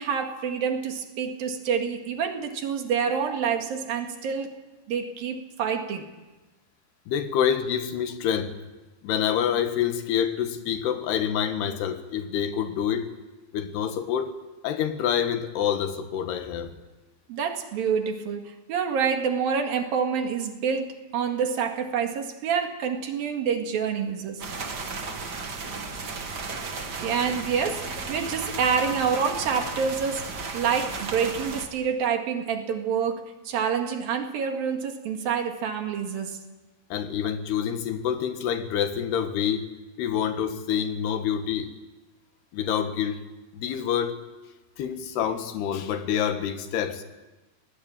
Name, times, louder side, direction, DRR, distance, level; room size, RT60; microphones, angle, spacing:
voice 1, 0.0-4.5 4.9-6.1 17.3-24.4 26.7-27.8 28.1-36.4, right 6 dB, 70° right, 4 dB, 3.6 m, -27 dB
voice 2, 7.1-8.6 9.0-13.1 13.5-14.3 14.6-16.8 36.9-39.7 40.0-41.7 42.5-43.2 43.5-44.2 44.8-47.0, left 9 dB, 90° left, 8 dB, 3.6 m, -27 dB
sound 1, 24.4-31.7, right 4 dB, 40° right, 1.5 m, -34 dB
24.0 x 19.0 x 8.9 m, 1.1 s
omnidirectional pair, 4.5 m